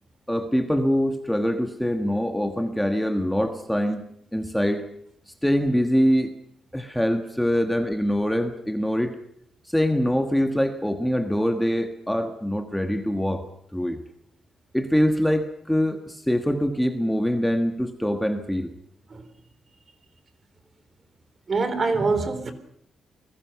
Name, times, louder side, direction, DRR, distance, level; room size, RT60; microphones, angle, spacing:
voice 1, 0.3-4.0 4.3-4.8 5.3-6.3 6.7-9.2 9.6-13.4 13.7-14.0 14.7-18.7, equal, 5° left, 6 dB, 1.4 m, -24 dB
voice 2, 21.5-22.5, right 3 dB, 35° right, 11 dB, 3.4 m, -24 dB
29.0 x 20.5 x 5.8 m, 0.72 s
wide cardioid pair, 150°, 0 cm